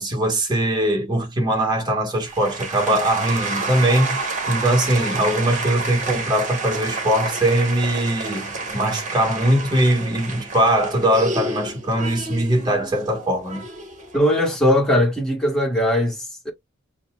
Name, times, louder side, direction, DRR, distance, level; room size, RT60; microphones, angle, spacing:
voice 1, 0.0-13.6, right 1 dB, 20° right, 1.5 m, -21 dB
sound 1, 2.2-14.2, right 3 dB, 40° right, 1.4 m, -30 dB
voice 2, 14.1-16.5, left 1 dB, 5° left, 1.5 m, -19 dB
6.9 x 2.3 x 2.3 m
head